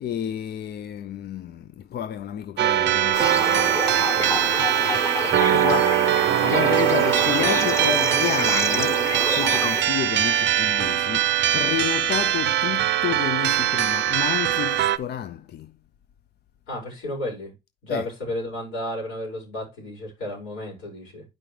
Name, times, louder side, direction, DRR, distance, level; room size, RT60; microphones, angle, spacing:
voice 1, 0.0-4.9 5.3-15.8 17.9-18.1, left 10 dB, 55° left, 0.4 m, -31 dB
sound 1, 2.6-15.0, right 11 dB, 65° right, 0.6 m, -22 dB
sound 2, 3.1-9.8, left 1 dB, 15° left, 0.9 m, -28 dB
voice 2, 4.8-5.3 16.7-17.5 17.8-21.2, left 1 dB, 85° left, 5.1 m, -33 dB
9.0 x 5.3 x 3.2 m
cardioid pair, 90°, 20 cm